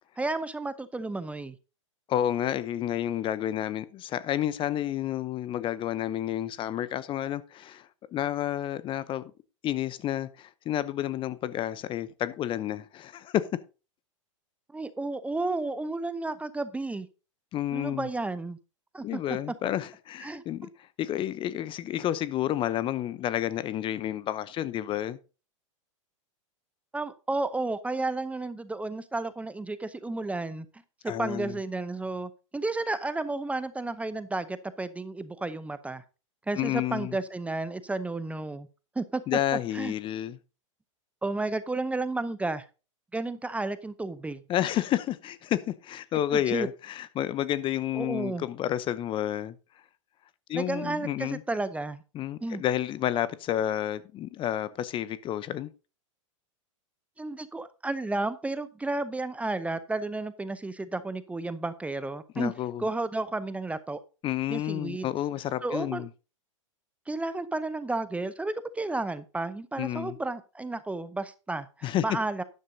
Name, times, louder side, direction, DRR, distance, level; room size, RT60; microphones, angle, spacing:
voice 1, 0.2-1.5 14.7-17.1 17.7-18.6 18.9-19.2 20.2-20.7 26.9-30.7 31.0-36.0 36.5-38.7 39.0-39.2 39.7-39.9 41.2-42.7 43.1-44.4 46.3-46.7 47.9-48.5 50.5-52.0 52.4-52.6 57.2-62.5 62.8-64.0 64.5-65.1 65.6-66.0 67.1-72.4, right 2 dB, 10° right, 0.7 m, -32 dB
voice 2, 2.1-9.2 9.6-13.4 17.5-18.1 19.0-20.7 21.0-25.2 31.1-31.5 36.6-37.2 39.3-40.4 44.5-49.5 50.5-51.4 52.1-55.7 62.4-62.8 64.2-66.1 69.8-70.2 71.8-72.0, left 12 dB, 30° left, 0.7 m, -30 dB
12.0 x 10.0 x 2.7 m
hypercardioid pair, 105°, 17 cm